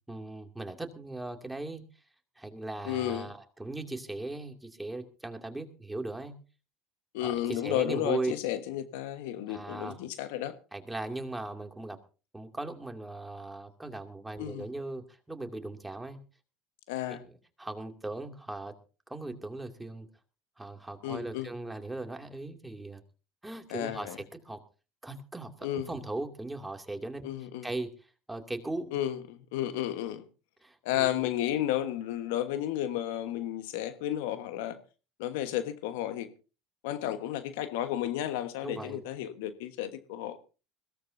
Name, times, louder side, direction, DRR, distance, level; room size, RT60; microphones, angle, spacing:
voice 1, 0.1-1.9 2.4-6.4 7.2-8.3 9.5-10.0 10.7-12.0 12.3-16.2 17.1-18.7 19.1-20.1 20.6-23.0 23.4-24.6 25.0-29.0 30.6-31.3 38.6-39.0, right 2 dB, 10° right, 2.5 m, -38 dB
voice 2, 2.9-3.3 7.1-10.5 14.4-14.6 16.9-17.2 21.0-21.5 23.7-24.2 25.6-25.9 27.2-27.6 28.9-30.2 30.8-34.8 35.2-36.3 36.8-40.4, left 12 dB, 75° left, 1.3 m, -32 dB
21.5 x 17.0 x 2.7 m
hypercardioid pair, 85°, 0 cm